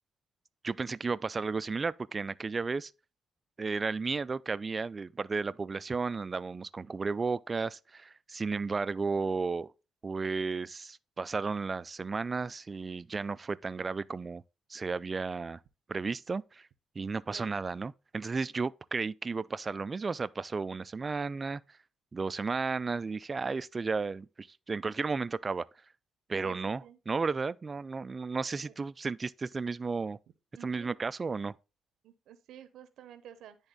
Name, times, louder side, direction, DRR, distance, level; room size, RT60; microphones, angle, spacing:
voice 1, 0.6-2.9 3.6-9.7 10.0-14.4 14.7-15.6 15.9-16.7 17.0-21.8 22.1-25.7 26.3-30.2 30.6-31.6, right 4 dB, 30° right, 0.3 m, -33 dB
voice 2, 17.0-17.6 26.4-27.0 28.7-28.8 30.5-30.9 32.0-33.7, right 10 dB, 80° right, 0.7 m, -52 dB
9.9 x 3.5 x 3.9 m
cardioid pair, 90°, 0 cm